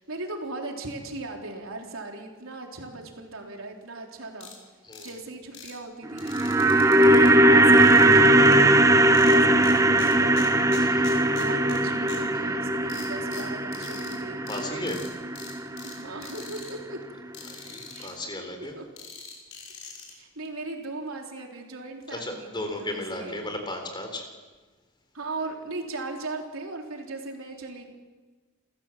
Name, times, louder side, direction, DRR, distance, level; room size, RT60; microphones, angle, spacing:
voice 1, 0.0-4.5 5.0-6.4 7.0-10.7 11.2-15.0 15.8-17.0 17.9-18.1 18.6-18.9 20.1-23.5 25.1-27.9, right 2 dB, 85° right, 1 dB, 3.7 m, -38 dB
sound 1, 4.4-4.5 4.9-5.1 5.5-5.7 6.2-7.3 7.7-8.6 9.1-9.7 10.0-11.8 12.1-12.2 12.9-14.1 14.5-14.6 14.9-15.1 15.4-15.9 16.2-16.7 17.3-18.1 19.0-20.1, left 7 dB, 75° left, 6.0 m, -43 dB
sound 2, 6.1-16.3 16.6-16.7, right 1 dB, 15° right, 0.8 m, -20 dB
voice 2, 10.8-11.2 14.4-15.0 17.5-18.7 22.1-24.3, left 1 dB, 20° left, 4 dB, 3.9 m, -35 dB
28.5 x 15.5 x 7.5 m, 1.3 s
head